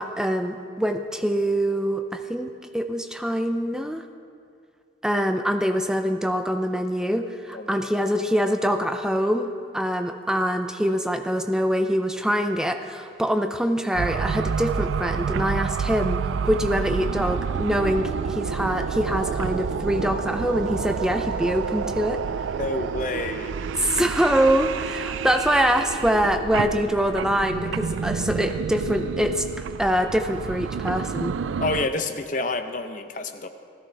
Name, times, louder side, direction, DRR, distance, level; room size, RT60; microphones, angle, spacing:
voice 1, 0.0-4.1 5.0-9.5 9.7-22.2 23.8-29.5 29.8-31.3, equal, 5° right, 6 dB, 0.4 m, -24 dB
sound 1, 13.9-31.9, right 6 dB, 85° right, 0.3 m, -29 dB
voice 2, 22.4-23.6 31.6-33.5, left 3 dB, 45° left, 8 dB, 0.6 m, -28 dB
16.0 x 14.0 x 3.4 m, 2.3 s
head